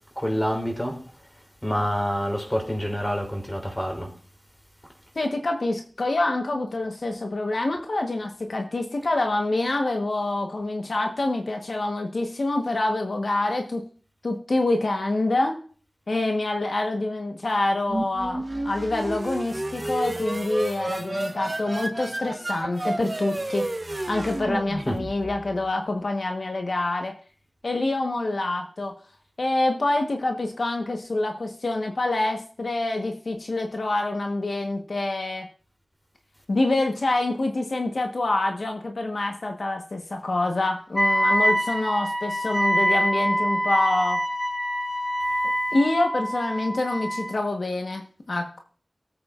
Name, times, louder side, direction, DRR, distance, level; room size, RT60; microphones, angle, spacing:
voice 1, 0.2-1.0 1.6-4.1 24.9-25.0, equal, 15° left, 3.1 m, -27 dB
voice 2, 5.1-13.8 14.2-15.6 16.1-23.7 24.1-27.1 27.6-29.0 29.4-35.5 36.5-44.2 45.7-48.6, left 2 dB, 80° left, 1.2 m, -26 dB
sound 1, 17.9-25.5, right 1 dB, 35° right, 1.0 m, -31 dB
Wind instrument woodwind instrument, 40.9-47.4, equal, 5° right, 1.4 m, -25 dB
18.5 x 8.4 x 2.5 m
wide cardioid pair, 50°, 0 cm